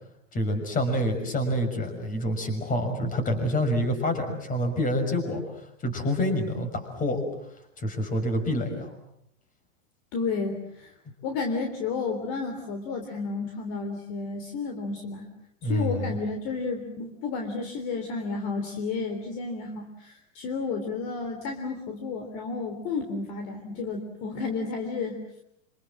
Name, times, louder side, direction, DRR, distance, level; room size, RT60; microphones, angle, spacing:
voice 1, 0.3-7.2 7.8-8.9 15.6-16.1, equal, 20° left, 6 dB, 6.4 m, -27 dB
voice 2, 10.1-10.9 11.2-15.3 15.6-25.2, left 4 dB, 45° left, 4 dB, 3.7 m, -32 dB
26.5 x 26.5 x 7.5 m, 0.75 s
hypercardioid pair, 135°, 38 cm